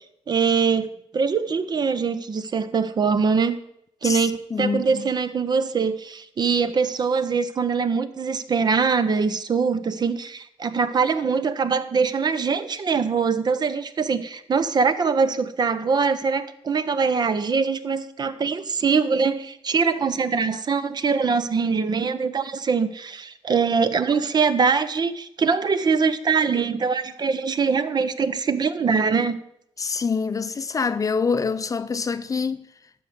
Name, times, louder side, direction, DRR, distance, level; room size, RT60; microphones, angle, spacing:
voice 1, 0.0-3.5 4.0-29.4, right 5 dB, 45° right, 0.8 m, -23 dB
voice 2, 4.0-5.1 29.8-32.7, left 5 dB, 35° left, 0.5 m, -26 dB
12.0 x 4.6 x 8.1 m
cardioid pair, 105°, 10 cm